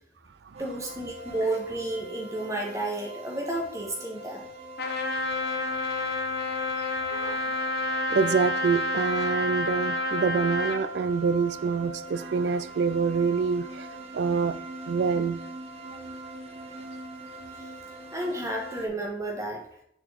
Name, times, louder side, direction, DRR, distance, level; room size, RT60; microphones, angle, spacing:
sound 1, 0.5-18.9, right 2 dB, 35° right, 1.1 m, -42 dB
voice 1, 0.6-4.5 18.1-19.6, right 1 dB, 15° right, 1.5 m, -31 dB
Trumpet, 4.8-10.8, left 2 dB, 55° left, 1.0 m, -29 dB
voice 2, 7.1-7.6 8.1-15.4, right 5 dB, 70° right, 0.4 m, -26 dB
6.8 x 5.0 x 3.6 m
head